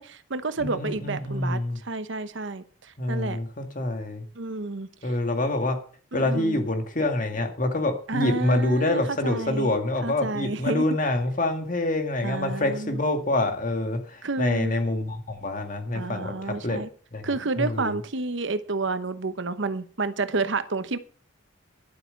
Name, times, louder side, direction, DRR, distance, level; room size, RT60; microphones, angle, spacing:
voice 1, 0.0-3.4 4.3-5.1 6.1-6.6 8.1-9.7 10.0-10.9 12.2-13.0 14.2-14.8 15.9-16.9 17.2-21.0, right 3 dB, 60° right, 12 dB, 0.9 m, -30 dB
voice 2, 0.6-1.8 3.0-4.3 5.0-5.8 6.1-16.8 17.1-17.3 17.6-18.0, left 2 dB, 40° left, 5 dB, 2.0 m, -26 dB
12.0 x 7.7 x 6.6 m, 0.43 s
head